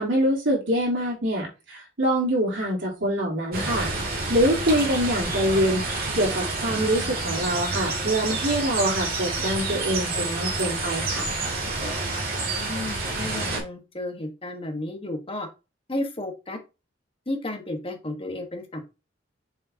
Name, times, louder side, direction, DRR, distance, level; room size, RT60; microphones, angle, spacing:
voice 1, 0.0-3.9 4.3-11.3, equal, 80° right, -4 dB, 3.5 m, -25 dB
sound 1, 3.5-13.6, right 3 dB, 55° right, 2.7 m, -28 dB
voice 2, 12.4-15.5 15.9-16.6 17.3-18.8, left 1 dB, 30° left, 4 dB, 1.4 m, -33 dB
7.0 x 4.9 x 2.9 m, 0.29 s
head